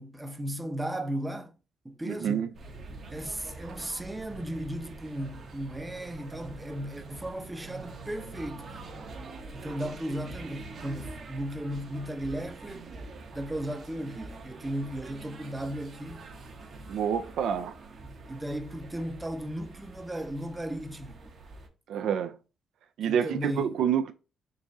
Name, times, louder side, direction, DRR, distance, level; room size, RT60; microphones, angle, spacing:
voice 1, 0.0-1.5 1.8-2.5 3.1-8.9 9.5-12.8 13.3-16.3 18.3-21.3 23.1-23.7, right 1 dB, 10° right, 0.6 m, -36 dB
voice 2, 2.0-2.5 16.9-17.7 21.9-22.4 23.0-24.1, right 8 dB, 75° right, 0.3 m, -28 dB
sound 1, 2.5-21.7, right 3 dB, 55° right, 0.8 m, -45 dB
3.9 x 2.4 x 3.9 m
cardioid pair, 90°, 0 cm